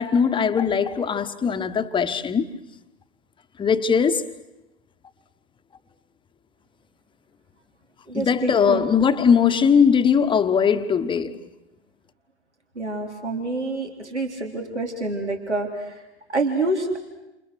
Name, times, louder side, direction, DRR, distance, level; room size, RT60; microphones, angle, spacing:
voice 1, 0.0-2.5 3.6-4.3 8.1-11.4, left 6 dB, 15° left, 1.2 m, -20 dB
voice 2, 8.1-8.8 12.8-15.7 16.3-17.0, right 2 dB, 85° right, 3.6 m, -27 dB
29.5 x 28.0 x 6.4 m
figure-of-eight pair, 95°, 34 cm